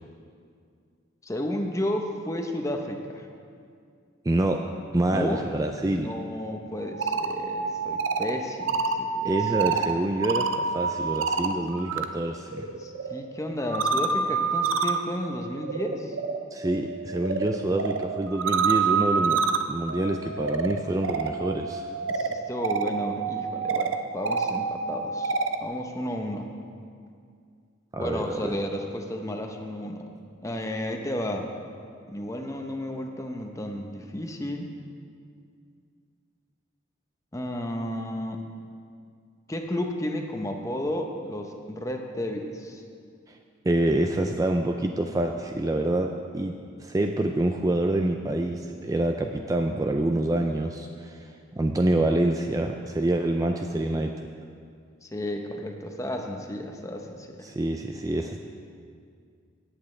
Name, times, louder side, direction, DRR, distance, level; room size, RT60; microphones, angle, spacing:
voice 1, 1.2-3.3 5.1-5.4 6.0-9.4 12.8-16.2 22.1-26.5 28.0-30.1 30.4-31.5 32.1-34.7 37.3-38.4 39.5-42.8 55.0-57.5, left 1 dB, 15° left, 3 dB, 0.7 m, -32 dB
voice 2, 4.2-4.6 4.9-6.1 9.2-12.7 16.5-19.4 19.7-21.9 27.9-28.6 43.3-43.4 43.6-46.5 46.8-54.1 57.4-58.5, right 1 dB, 15° right, 4 dB, 0.3 m, -26 dB
sound 1, 6.8-12.1 12.4-25.6, right 5 dB, 80° right, 0.6 m, -28 dB
17.5 x 8.5 x 3.3 m, 2.3 s
head